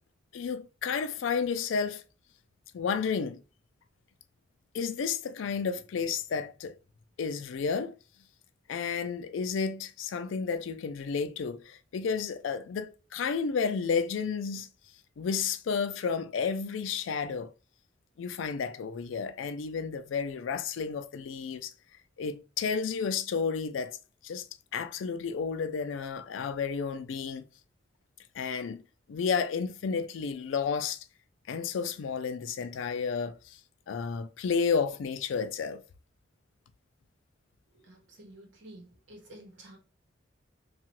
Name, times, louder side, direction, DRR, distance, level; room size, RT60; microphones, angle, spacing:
voice 1, 0.3-2.0 2.7-3.4 4.7-6.7 7.2-7.9 8.7-14.7 15.2-17.5 18.2-21.7 22.2-24.0 24.2-24.5 24.7-27.4 28.3-28.8 29.1-31.0 31.5-33.6 33.9-35.8, left 5 dB, 85° left, 0.4 m, -31 dB
voice 2, 37.9-39.8, right 1 dB, 80° right, 1.1 m, -51 dB
2.8 x 2.3 x 3.0 m
head